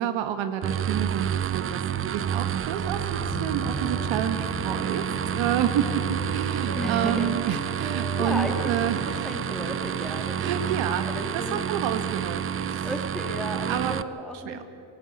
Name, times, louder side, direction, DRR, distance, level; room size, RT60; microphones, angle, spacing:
voice 1, 0.0-5.1 5.3-9.3 10.4-11.1 11.3-12.9 13.7-14.0 14.4-14.6, right 9 dB, 70° right, 8 dB, 1.5 m, -29 dB
sound 1, 0.6-14.0, right 9 dB, 30° right, 0.5 m, -29 dB
sound 2, 3.1-10.6, equal, 90° left, 2.9 m, -40 dB
Wind instrument woodwind instrument, 3.6-7.5 7.8-12.0, left 1 dB, 20° left, 2.9 m, -44 dB
voice 2, 6.7-11.6 12.8-14.6, equal, ahead, 2 dB, 2.6 m, -35 dB
22.0 x 12.5 x 9.8 m, 2.8 s
cardioid pair, 115°, 48 cm